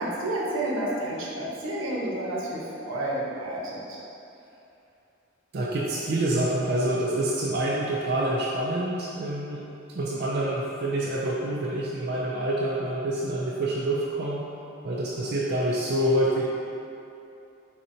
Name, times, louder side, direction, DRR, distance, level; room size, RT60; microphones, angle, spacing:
voice 1, 0.0-4.0, right 1 dB, 90° right, -5 dB, 0.9 m, -30 dB
voice 2, 5.5-9.6 9.9-14.4 14.8-16.5, right 1 dB, 55° right, -5 dB, 0.4 m, -27 dB
4.4 x 4.0 x 2.7 m, 2.8 s
head